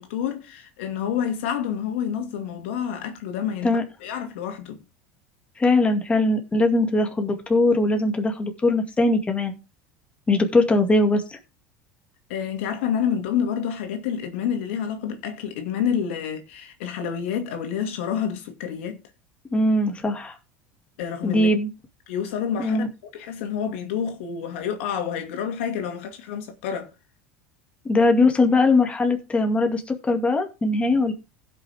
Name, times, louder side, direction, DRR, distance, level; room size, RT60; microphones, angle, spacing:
voice 1, 0.0-3.7 4.0-4.8 12.3-19.0 21.0-21.5 22.1-22.9 23.1-26.9, left 8 dB, 75° left, 2.3 m, -28 dB
voice 2, 5.6-9.5 10.3-11.4 19.5-20.4 21.2-21.7 22.6-22.9 27.8-31.1, left 2 dB, 20° left, 2.1 m, -21 dB
16.5 x 5.9 x 3.5 m
hypercardioid pair, 95°, 7 cm